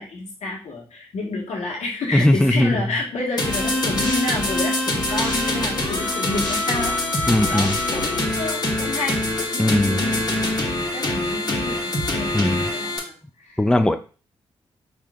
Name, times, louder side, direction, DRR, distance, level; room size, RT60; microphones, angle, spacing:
voice 1, 0.0-10.2 10.7-13.7, left 2 dB, 70° left, -2 dB, 1.5 m, -30 dB
voice 2, 2.1-2.8 7.3-7.7 9.6-10.0 12.3-12.6 13.6-13.9, left 1 dB, 5° left, 8 dB, 0.5 m, -18 dB
sound 1, 3.4-13.0, left 1 dB, 35° left, 1.4 m, -24 dB
4.9 x 3.0 x 2.4 m, 0.36 s
supercardioid pair, 45°, 12 cm